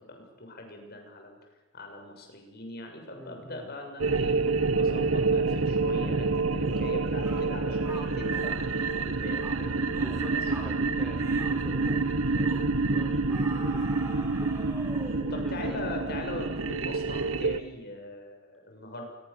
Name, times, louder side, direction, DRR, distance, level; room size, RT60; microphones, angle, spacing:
voice 1, 0.1-1.4 1.7-4.4 4.7-8.7 9.1-9.9 10.3-10.4 15.3-19.0, left 1 dB, 50° left, 3 dB, 7.0 m, -40 dB
voice 2, 3.1-3.7 9.9-14.6 15.2-15.8, equal, ahead, 1 dB, 4.0 m, -45 dB
sound 1, 4.0-17.6, right 3 dB, 85° right, 1.4 m, -28 dB
sound 2, 6.6-6.9 7.2-7.5 7.8-8.6 8.9-9.1 9.4-9.6 9.9-10.2 10.5-10.8 11.2-11.5 11.8-12.0 12.5-12.7 13.3-15.3, right 1 dB, 15° right, 6.0 m, -44 dB
28.0 x 22.0 x 7.2 m, 1.1 s
head